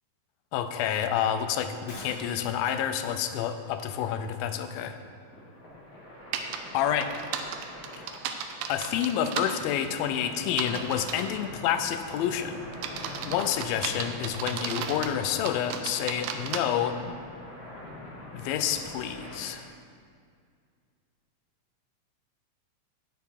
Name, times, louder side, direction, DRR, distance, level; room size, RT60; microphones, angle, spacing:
voice 1, 0.5-5.0 6.7-7.1 8.0-8.2 8.7-12.6 13.2-17.0 18.3-19.6, left 9 dB, 85° left, 9 dB, 2.4 m, -29 dB
sound 1, 1.8-19.5, left 1 dB, 60° left, 3.4 m, -44 dB
Shatter, 1.9-2.7, left 1 dB, 20° left, 1.7 m, -44 dB
sound 2, 6.3-6.6 7.0-9.5 10.5-11.3 11.9-12.2 12.7-15.1 15.5-16.6, right 8 dB, 85° right, 2.4 m, -34 dB
9.6 x 8.4 x 4.2 m, 2.1 s
omnidirectional pair, 4.1 m